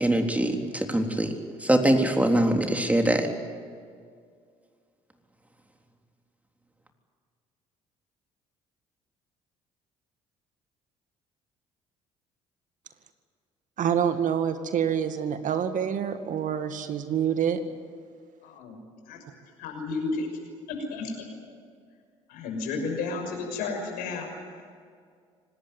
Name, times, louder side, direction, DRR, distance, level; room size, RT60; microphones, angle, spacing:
voice 1, 0.0-1.3 1.6-3.3, right 1 dB, 10° right, 4 dB, 3.7 m, -23 dB
voice 2, 13.8-17.6, right 8 dB, 55° right, 9 dB, 2.0 m, -26 dB
voice 3, 18.4-19.2 19.6-20.3 20.7-21.3 22.3-24.8, left 3 dB, 70° left, 3 dB, 6.3 m, -33 dB
25.5 x 19.5 x 9.6 m, 2.1 s
hypercardioid pair, 55°, 16 cm